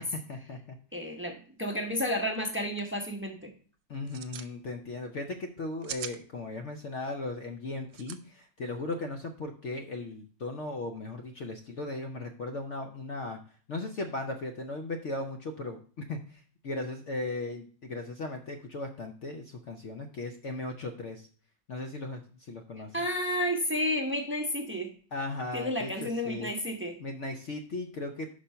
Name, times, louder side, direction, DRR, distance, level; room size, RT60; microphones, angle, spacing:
voice 1, 0.0-0.8 1.0-1.1 3.9-13.4 13.7-21.3 21.7-23.1 25.1-26.5 27.0-28.3, left 2 dB, 65° left, 4 dB, 0.7 m, -37 dB
voice 2, 0.9-3.5 22.9-24.9 25.5-27.0, left 1 dB, 15° right, 2 dB, 0.5 m, -31 dB
sound 1, 2.3-2.5 2.8-3.1 3.9-4.5 5.6-6.2 7.9-8.2, right 10 dB, 80° right, 1.3 m, -41 dB
5.5 x 5.3 x 5.6 m, 0.42 s
omnidirectional pair, 2.0 m